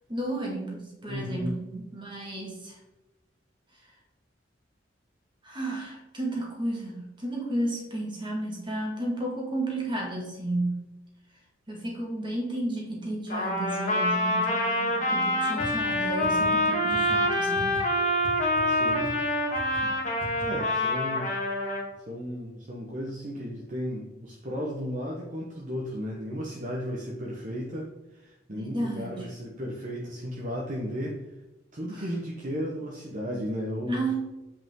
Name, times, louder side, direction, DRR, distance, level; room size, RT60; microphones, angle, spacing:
voice 1, 0.1-2.8 5.4-10.9 11.7-17.9 19.8-20.0 28.5-29.3 31.9-32.0 33.9-34.2, right 1 dB, 25° right, -1 dB, 2.0 m, -33 dB
voice 2, 1.1-1.6 18.7-19.0 20.4-21.3 22.1-31.2 31.7-34.0, equal, 45° right, -3 dB, 1.1 m, -34 dB
Trumpet, 13.3-21.8, left 1 dB, 45° left, 1.8 m, -26 dB
sound 1, 15.6-15.7 15.9-16.0 16.2-16.5 16.9-17.1 17.5-17.8 18.2-18.3 18.6-18.7 18.9-19.1 19.5-19.8 20.2-20.4, left 1 dB, 10° left, 2.1 m, -39 dB
8.2 x 5.1 x 3.8 m, 1.0 s
head